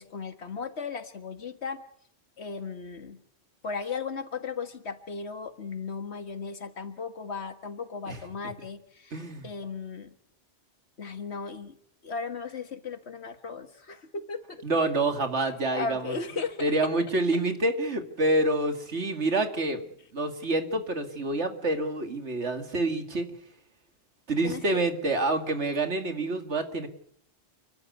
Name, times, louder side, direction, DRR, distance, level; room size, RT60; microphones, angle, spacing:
voice 1, 0.0-1.8 2.4-3.2 3.6-10.1 11.0-11.7 12.0-14.6 15.7-16.7 24.4-24.8, left 5 dB, 75° left, 9 dB, 1.9 m, -36 dB
voice 2, 9.1-9.5 14.6-16.2 16.6-19.9 20.1-23.3 24.3-26.9, right 2 dB, 85° right, 6 dB, 2.6 m, -27 dB
30.0 x 12.5 x 9.3 m, 0.68 s
omnidirectional pair, 1.1 m